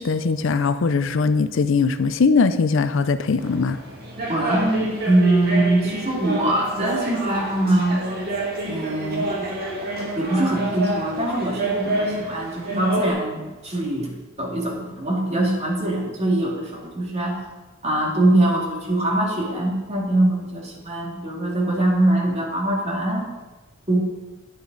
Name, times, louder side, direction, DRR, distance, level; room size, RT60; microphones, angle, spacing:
voice 1, 0.0-3.8, left 4 dB, 60° left, 11 dB, 0.5 m, -20 dB
sound 1, 3.4-13.1, right 1 dB, 50° right, 2.1 m, -28 dB
voice 2, 4.3-8.0 8.6-9.3 10.2-14.1 14.4-17.5 17.8-23.3 23.9-24.0, right 1 dB, 30° right, -1 dB, 2.2 m, -22 dB
10.5 x 9.3 x 3.9 m, 1.2 s
head